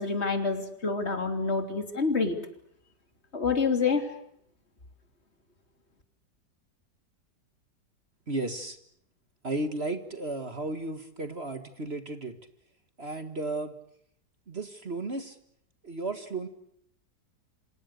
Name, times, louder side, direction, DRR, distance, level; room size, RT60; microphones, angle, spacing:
voice 1, 0.0-2.4 3.3-4.1, left 4 dB, 40° left, 6 dB, 3.4 m, -27 dB
voice 2, 8.3-8.8 9.4-12.4 13.0-13.8 14.5-15.4 15.8-16.5, right 2 dB, 40° right, 8 dB, 2.0 m, -34 dB
28.5 x 27.0 x 6.7 m, 0.70 s
omnidirectional pair, 1.8 m